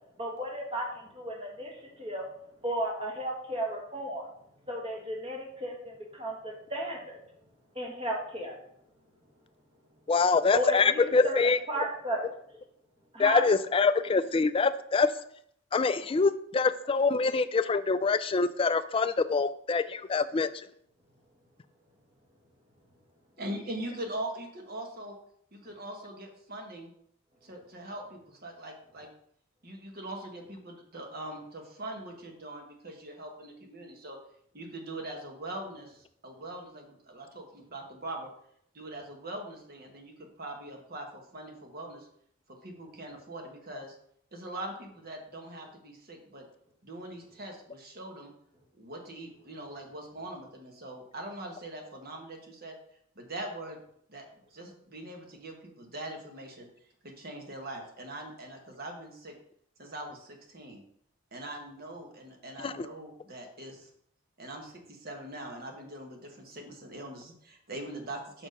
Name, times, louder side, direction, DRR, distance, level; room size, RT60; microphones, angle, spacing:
voice 1, 0.2-2.3 2.6-4.3 4.7-7.2 7.8-8.6 10.5-11.4 11.7-12.3 13.1-13.4, right 1 dB, 30° right, -1 dB, 1.7 m, -34 dB
voice 2, 10.1-11.6 13.2-15.1 15.7-20.7 62.6-62.9, left 4 dB, 25° left, 13 dB, 0.3 m, -25 dB
voice 3, 23.4-25.2 25.5-26.9 27.4-29.1 29.6-34.2 34.5-38.3 38.7-42.1 42.5-43.9 44.3-46.4 46.8-48.3 48.8-52.7 53.1-53.8 54.1-54.2 54.5-56.7 57.0-59.3 59.8-60.8 61.3-63.9 64.4-68.5, right 1 dB, 50° right, 2 dB, 1.4 m, -42 dB
5.9 x 4.5 x 5.3 m, 0.69 s
head